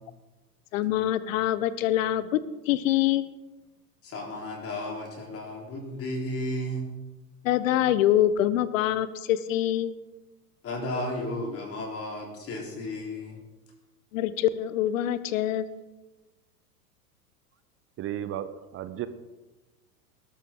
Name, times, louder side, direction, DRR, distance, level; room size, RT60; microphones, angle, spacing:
voice 1, 0.7-3.3 7.4-10.0 14.1-15.7, left 12 dB, 55° left, 15 dB, 1.1 m, -25 dB
voice 2, 4.0-6.9 10.6-13.4, left 1 dB, 30° left, -1 dB, 3.8 m, -33 dB
voice 3, 18.0-19.1, right 11 dB, 30° right, 12 dB, 0.9 m, -34 dB
18.5 x 13.5 x 3.8 m, 1.1 s
figure-of-eight pair, 95°, 47 cm